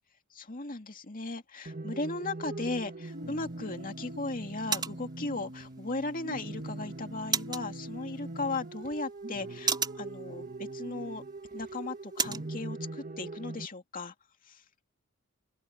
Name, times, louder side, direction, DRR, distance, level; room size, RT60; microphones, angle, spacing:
voice 1, 0.3-11.2 11.5-14.1 14.4-14.6, left 3 dB, 40° left, 2.4 m, -37 dB
sound 1, 1.7-13.7, right 2 dB, 40° right, 2.0 m, -41 dB
sound 2, 3.1-12.5, right 6 dB, 20° right, 3.2 m, -38 dB
open air
head